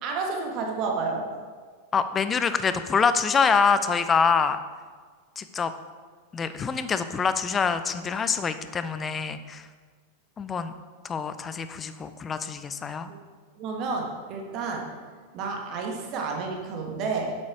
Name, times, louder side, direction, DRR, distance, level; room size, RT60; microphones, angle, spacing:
voice 1, 0.0-1.3 13.1-13.2 13.6-14.9 15.3-17.3, right 4 dB, 40° right, 1 dB, 1.6 m, -30 dB
voice 2, 1.9-4.6 5.4-5.7 6.3-9.7 10.4-10.7 11.0-13.1, left 5 dB, 20° left, 11 dB, 0.6 m, -25 dB
8.2 x 7.5 x 4.7 m, 1.6 s
figure-of-eight pair, 90°, 0 cm